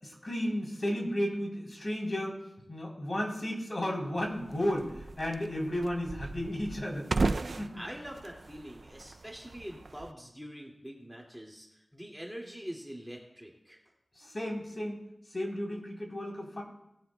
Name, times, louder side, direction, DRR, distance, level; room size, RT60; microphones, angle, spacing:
voice 1, 0.0-2.4 2.7-7.1 7.6-7.8 14.2-15.0 15.3-16.6, left 1 dB, 45° left, -1 dB, 3.4 m, -33 dB
sound 1, 4.2-10.1, right 3 dB, 70° right, 0.4 m, -36 dB
voice 2, 7.7-13.8, equal, 5° right, -1 dB, 2.2 m, -44 dB
19.0 x 11.5 x 2.2 m, 0.83 s
wide cardioid pair, 75°, 0 cm